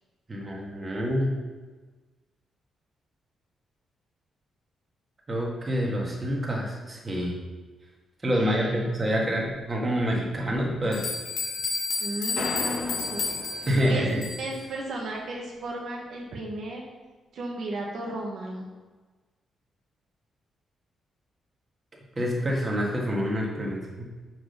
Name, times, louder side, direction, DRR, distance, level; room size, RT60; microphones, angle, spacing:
voice 1, 0.3-1.3 5.3-7.3 8.2-11.1 13.6-14.2 22.2-24.0, equal, 25° right, -2 dB, 1.7 m, -27 dB
voice 2, 8.3-8.9 12.0-14.1 14.4-16.8 17.3-18.7, right 1 dB, 65° right, -1 dB, 1.3 m, -35 dB
sound 1, 10.5-10.6 10.9-14.6, left 4 dB, 85° left, 2.3 m, -31 dB
sound 2, 12.4-14.8, left 3 dB, 60° left, 1.3 m, -37 dB
6.1 x 4.9 x 6.6 m, 1.3 s
cardioid pair, 130°, 0 cm